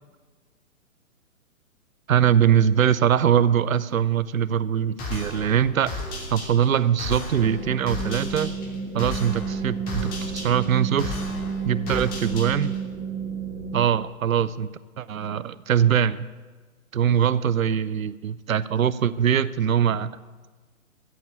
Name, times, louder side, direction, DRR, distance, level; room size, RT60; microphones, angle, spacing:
voice 1, 2.1-5.9 6.3-8.5 8.9-11.1 11.6-12.8 13.7-14.7 15.0-16.3 16.9-20.1, right 9 dB, 80° right, 17 dB, 0.6 m, -22 dB
sound 1, 5.0-12.9, left 2 dB, 20° left, 3.0 m, -35 dB
sound 2, 7.4-13.8, right 5 dB, 55° right, 3.1 m, -31 dB
14.0 x 7.2 x 8.2 m, 1.3 s
figure-of-eight pair, 125°, 40 cm